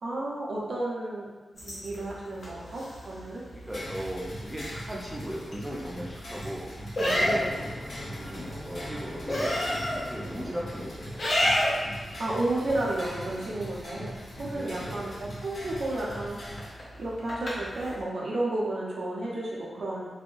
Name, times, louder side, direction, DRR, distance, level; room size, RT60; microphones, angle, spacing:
voice 1, 0.0-1.4 1.6-3.4 7.0-7.6 12.2-16.4 17.0-20.1, right 1 dB, 75° right, -5 dB, 0.7 m, -32 dB
sound 1, 1.6-18.0, left 1 dB, 60° left, 0.9 m, -34 dB
voice 2, 3.5-6.7 8.1-11.1 14.4-15.1, equal, 15° right, -4 dB, 0.6 m, -38 dB
sound 2, 3.7-16.7, equal, 85° left, 1.1 m, -41 dB
sound 3, 7.0-12.8, left 1 dB, 30° left, 0.8 m, -43 dB
3.5 x 2.2 x 2.5 m, 1.3 s
cardioid pair, 75°, 0 cm